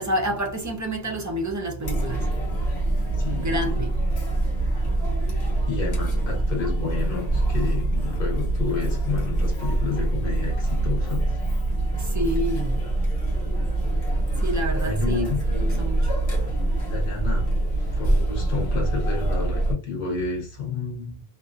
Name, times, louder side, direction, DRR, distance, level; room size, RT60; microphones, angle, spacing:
voice 1, 0.0-2.3 3.4-3.9 12.0-12.8 14.4-15.3 15.5-16.1, right 1 dB, 25° right, 0.5 m, -28 dB
Chatter, 1.8-19.7, right 2 dB, 85° left, 1.2 m, -24 dB
voice 2, 3.2-3.8 5.2-11.4 14.8-15.4 16.9-17.5 17.8-21.2, left 5 dB, 60° left, 1.2 m, -31 dB
2.7 x 2.5 x 2.4 m
omnidirectional pair, 1.0 m